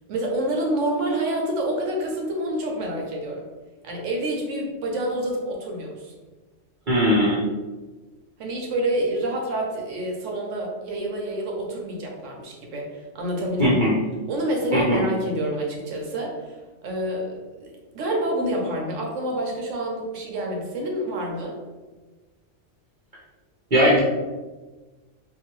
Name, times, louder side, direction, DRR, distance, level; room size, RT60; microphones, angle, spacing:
voice 1, 0.1-3.5 3.8-6.1 8.4-13.8 14.3-21.6, right 1 dB, 75° right, 0 dB, 1.0 m, -28 dB
voice 2, 6.9-7.4 13.6-13.9 14.7-15.0 23.7-24.0, equal, 45° right, -6 dB, 0.9 m, -19 dB
2.7 x 2.6 x 2.9 m, 1.2 s
omnidirectional pair, 1.3 m